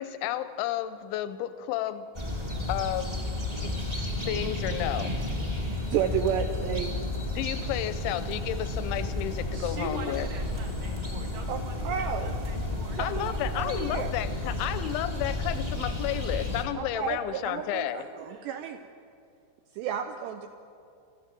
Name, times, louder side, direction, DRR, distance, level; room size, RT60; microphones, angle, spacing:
voice 1, 0.0-2.1 2.7-3.1 3.6-3.7 4.0-5.1 7.4-10.3 13.0-18.1, left 12 dB, 80° left, 12 dB, 2.9 m, -32 dB
sound 1, 2.1-16.6, left 2 dB, 25° right, 0.5 m, -32 dB
voice 2, 5.9-6.9 11.5-11.6 11.8-12.3 13.0-14.1 16.8-18.8 19.8-20.5, right 9 dB, 85° right, 7 dB, 2.5 m, -32 dB
voice 3, 9.5-13.0 18.2-18.8, right 4 dB, 70° right, 4 dB, 2.4 m, -43 dB
27.0 x 14.5 x 7.6 m, 2.4 s
omnidirectional pair, 5.9 m